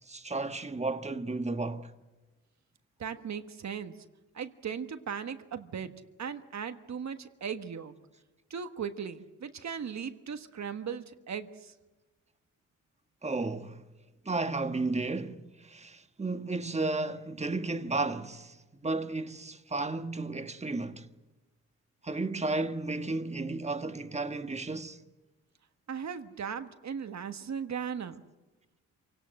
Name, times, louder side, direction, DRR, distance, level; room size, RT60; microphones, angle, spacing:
voice 1, 0.1-1.9 13.2-13.8 14.2-18.6 18.8-21.0 22.0-25.0, right 3 dB, 20° right, 1.4 m, -33 dB
voice 2, 3.0-4.0 4.3-5.9 6.2-7.9 8.5-11.7 25.9-28.2, right 7 dB, 60° right, 1.4 m, -37 dB
27.5 x 17.5 x 7.7 m
cardioid pair, 100°, 31 cm